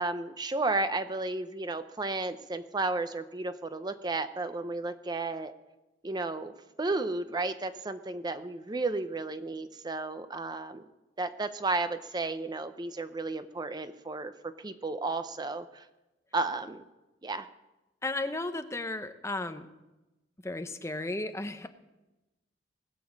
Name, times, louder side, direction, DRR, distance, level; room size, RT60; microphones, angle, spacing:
voice 1, 0.0-5.5 6.0-6.5 6.8-10.8 11.2-14.3 14.6-15.8 16.3-16.8 17.2-17.5, right 3 dB, 25° right, 10 dB, 0.5 m, -33 dB
voice 2, 18.0-19.7 20.4-21.7, left 2 dB, 15° left, 9 dB, 0.7 m, -34 dB
19.0 x 7.0 x 7.2 m, 1.0 s
head